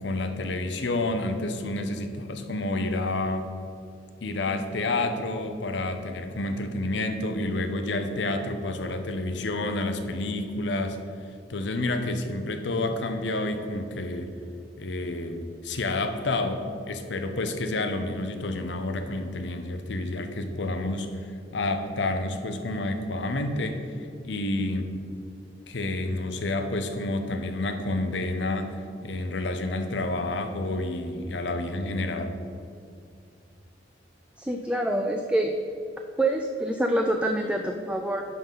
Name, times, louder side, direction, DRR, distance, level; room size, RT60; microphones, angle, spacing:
voice 1, 0.0-3.5 4.2-11.0 11.5-14.4 14.8-21.1 21.5-24.9 25.7-32.4, left 2 dB, 70° left, 7 dB, 0.7 m, -29 dB
voice 2, 34.4-35.5 36.2-38.2, right 1 dB, 5° right, 3 dB, 0.4 m, -26 dB
10.5 x 3.9 x 5.6 m, 2.5 s
head